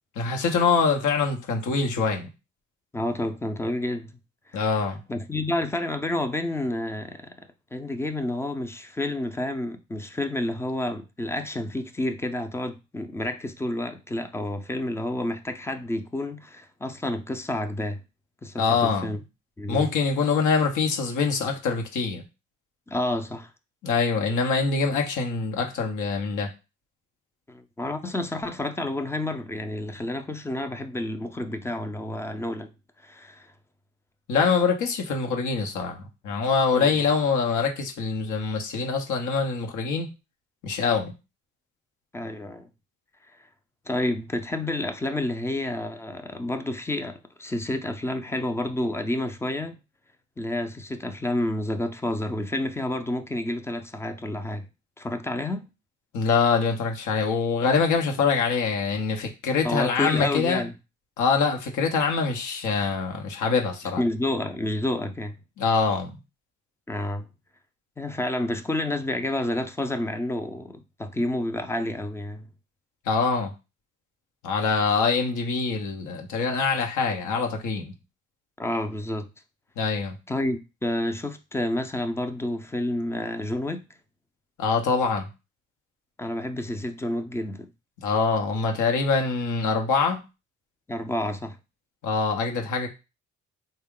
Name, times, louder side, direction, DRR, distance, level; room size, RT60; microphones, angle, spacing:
voice 1, 0.2-2.3 4.5-5.0 18.6-19.1 19.7-22.2 23.8-26.5 34.3-40.1 40.6-41.1 56.1-60.6 61.2-64.0 65.6-66.2 73.1-73.5 74.4-77.9 79.8-80.2 84.6-85.3 88.0-90.2 92.0-92.9, left 5 dB, 80° left, 0.9 m, -24 dB
voice 2, 2.9-4.1 4.5-4.7 5.1-7.3 7.7-18.0 18.4-19.2 19.6-19.9 22.9-23.5 27.5-32.7 33.0-33.5 36.7-37.0 42.1-42.7 43.9-49.8 50.4-54.6 55.0-55.7 59.6-60.7 64.0-65.4 66.9-67.3 68.0-72.5 78.6-79.3 80.3-83.9 86.2-87.7 90.9-91.6, left 1 dB, 10° left, 0.4 m, -29 dB
3.5 x 2.2 x 3.6 m
cardioid pair, 90°, 30 cm